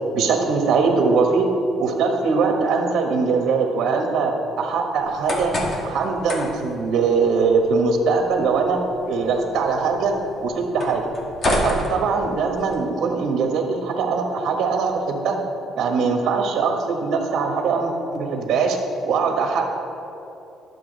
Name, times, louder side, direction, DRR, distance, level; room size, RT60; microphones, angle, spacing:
voice 1, 0.1-1.5 1.8-5.5 5.8-10.1 10.4-11.1 11.5-15.4 15.7-18.8 19.0-19.7, right 4 dB, 65° right, 3 dB, 1.3 m, -21 dB
sound 1, 5.0-12.7, left 1 dB, 35° left, 1.4 m, -30 dB
10.5 x 6.9 x 4.0 m, 2.9 s
cardioid pair, 125°, 0 cm